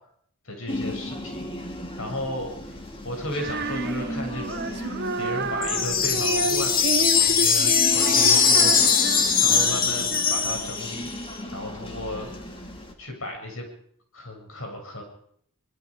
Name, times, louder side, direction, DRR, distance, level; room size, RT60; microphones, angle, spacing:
voice 1, 0.4-1.5 2.0-4.7 5.2-8.9 9.4-11.1 11.5-12.7 13.0-13.7 14.1-15.0, left 1 dB, 65° left, 3 dB, 7.6 m, -34 dB
sound 1, 0.7-12.9, left 1 dB, 25° left, 2.7 m, -35 dB
Female singing, 3.3-10.7, right 3 dB, 50° right, 1.2 m, -31 dB
sound 2, 5.6-11.1, left 6 dB, 40° left, 2.2 m, -21 dB
24.5 x 21.0 x 5.2 m, 0.65 s
head